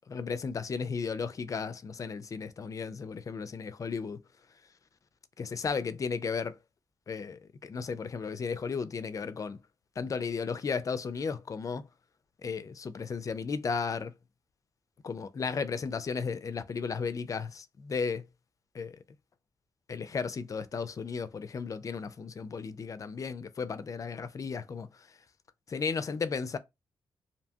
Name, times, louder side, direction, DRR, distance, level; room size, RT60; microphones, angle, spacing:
voice 1, 0.1-4.2 5.4-6.6 7.1-9.6 10.0-11.9 12.4-14.1 15.0-18.3 18.7-19.0 19.9-24.9 25.7-26.6, left 5 dB, 40° left, 0.4 m, -34 dB
2.7 x 2.2 x 2.7 m
cardioid pair, 70°, 8 cm